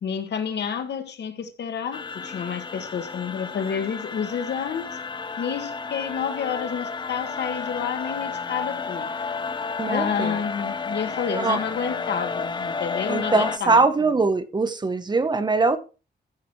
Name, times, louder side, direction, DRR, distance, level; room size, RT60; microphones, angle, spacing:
voice 1, 0.0-4.8 5.4-9.1 9.9-13.8, left 7 dB, 80° left, 1.7 m, -29 dB
sound 1, 1.9-13.6, left 4 dB, 25° left, 0.7 m, -32 dB
voice 2, 9.8-10.4 11.3-11.6 13.1-15.8, right 3 dB, 25° right, 0.9 m, -22 dB
14.0 x 6.4 x 4.6 m
wide cardioid pair, 160°, 17 cm